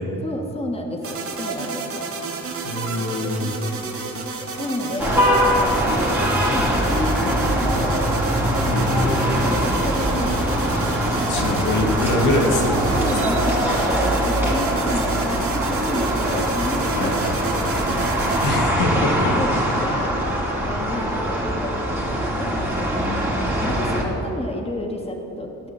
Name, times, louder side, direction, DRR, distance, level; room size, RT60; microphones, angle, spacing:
voice 1, 0.2-2.0 4.6-8.2 8.8-10.6 12.5-12.6 12.9-18.5 18.8-20.2 20.6-23.1 23.7-25.7, left 1 dB, 20° left, 1 dB, 2.2 m, -30 dB
sound 1, 1.0-18.5, right 4 dB, 50° right, 2.2 m, -31 dB
voice 2, 2.6-3.5 8.7-9.1 11.3-13.0 13.2-13.4 16.9-17.2 18.4-19.1, left 2 dB, 75° left, 0 dB, 2.5 m, -23 dB
sound 2, 5.0-24.0, equal, 10° right, 4.2 m, -22 dB
16.0 x 11.0 x 7.4 m, 2.9 s
cardioid pair, 90°, 30 cm